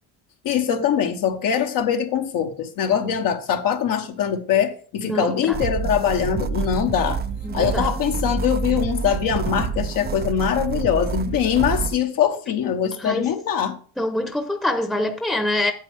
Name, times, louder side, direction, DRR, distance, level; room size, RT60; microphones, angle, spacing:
voice 1, 0.4-7.2 7.5-13.8, left 8 dB, 65° left, 1.2 m, -22 dB
voice 2, 5.0-5.6 7.4-7.9 13.0-13.4 14.0-15.7, left 1 dB, ahead, 0.9 m, -25 dB
sound 1, 5.5-12.0, right 6 dB, 25° right, 0.5 m, -27 dB
8.9 x 7.7 x 3.4 m
cardioid pair, 105°, 36 cm